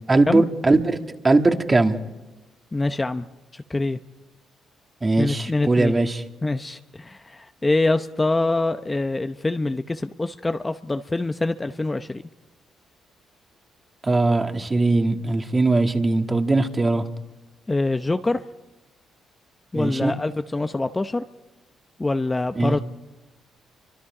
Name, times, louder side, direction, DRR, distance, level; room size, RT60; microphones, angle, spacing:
voice 1, 0.1-1.0 1.2-2.0 5.0-6.2 14.0-17.0 19.7-20.1 22.6-22.8, right 2 dB, 25° right, 6 dB, 1.7 m, -20 dB
voice 2, 2.7-3.3 3.5-4.0 5.2-6.0 6.4-12.2 17.7-18.4 19.7-21.2 22.0-22.8, left 2 dB, 20° left, 8 dB, 0.7 m, -25 dB
30.0 x 24.5 x 4.9 m, 1.1 s
cardioid pair, 90°, 0 cm